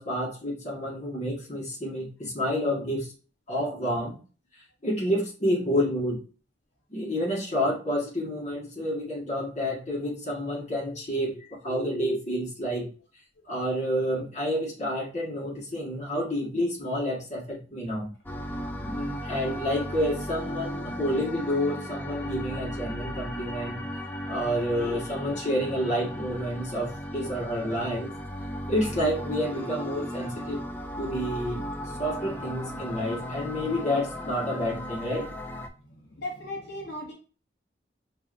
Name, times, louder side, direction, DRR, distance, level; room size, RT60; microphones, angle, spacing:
voice 1, 0.0-3.1 3.5-4.1 4.8-6.2 6.9-12.9 13.4-18.1 18.8-23.8 24.3-28.1 28.7-30.6 31.0-31.6 32.0-35.3, equal, 40° left, -4 dB, 1.4 m, -29 dB
sound 1, 18.3-35.7, equal, 10° left, 0.3 m, -36 dB
voice 2, 35.9-37.1, left 1 dB, 65° left, -3 dB, 0.9 m, -37 dB
4.9 x 2.7 x 2.5 m, 0.36 s
head